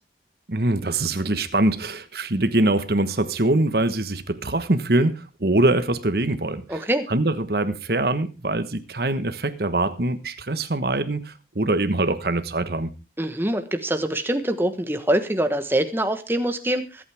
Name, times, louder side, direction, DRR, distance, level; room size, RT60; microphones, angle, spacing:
voice 1, 0.5-12.9, right 2 dB, 60° right, 11 dB, 1.3 m, -23 dB
voice 2, 6.7-7.1 13.2-17.0, right 1 dB, 10° right, 7 dB, 1.2 m, -24 dB
24.0 x 8.8 x 3.5 m, 0.30 s
head